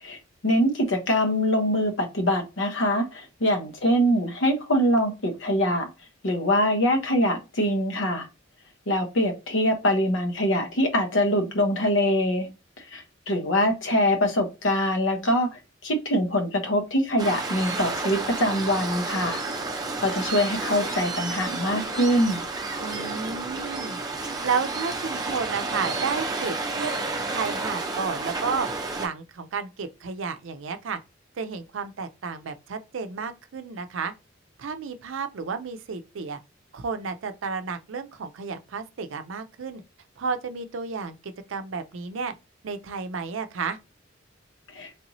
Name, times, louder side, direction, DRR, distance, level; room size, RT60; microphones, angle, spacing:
voice 1, 0.4-5.9 6.2-8.3 8.9-12.5 12.9-19.4 20.0-22.4 44.7-44.9, equal, 85° left, 0.9 m, -24 dB
Waves surf, 17.2-29.1, right 3 dB, 20° right, 0.6 m, -31 dB
voice 2, 22.8-24.0 24.4-26.9 27.3-28.7 29.0-31.0 31.4-34.1 34.6-36.4 36.7-39.8 40.2-42.3 42.6-43.8, right 5 dB, 80° right, 0.5 m, -32 dB
3.3 x 2.9 x 2.7 m
head